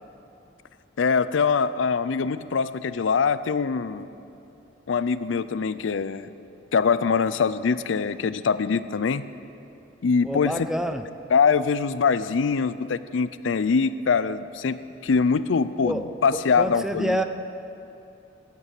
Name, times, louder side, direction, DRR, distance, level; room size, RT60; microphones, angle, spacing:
voice 1, 1.0-4.1 4.9-6.3 6.7-9.3 10.0-10.7 11.3-17.2, left 5 dB, 80° left, 14 dB, 0.5 m, -23 dB
voice 2, 10.2-11.1 15.8-16.1 16.6-17.2, equal, 5° right, 7 dB, 0.5 m, -27 dB
14.0 x 9.0 x 8.2 m, 2.8 s
head